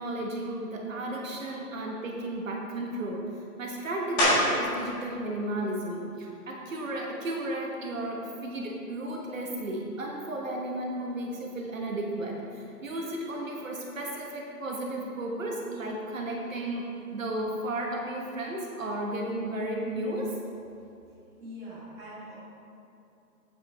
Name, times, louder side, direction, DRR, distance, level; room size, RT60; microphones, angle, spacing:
voice 1, 0.0-3.3 3.6-20.3, right 1 dB, 55° right, -1 dB, 1.4 m, -34 dB
sound 1, 4.2-4.8 5.3-9.8 10.3-15.4 15.7-21.4, equal, 15° left, 1.6 m, -35 dB
voice 2, 21.4-22.3, equal, 5° right, -13 dB, 1.4 m, -43 dB
8.5 x 8.3 x 3.5 m, 2.6 s
hypercardioid pair, 165°, 47 cm